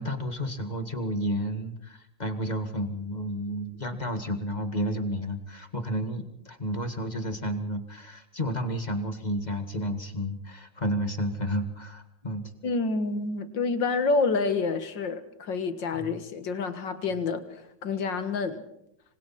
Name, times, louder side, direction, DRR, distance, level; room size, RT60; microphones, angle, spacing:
voice 1, 0.0-12.5 15.9-16.1, equal, 25° left, 7 dB, 1.8 m, -31 dB
voice 2, 12.6-18.6, left 4 dB, 75° left, 10 dB, 2.4 m, -28 dB
26.0 x 25.5 x 4.3 m, 0.78 s
omnidirectional pair, 2.0 m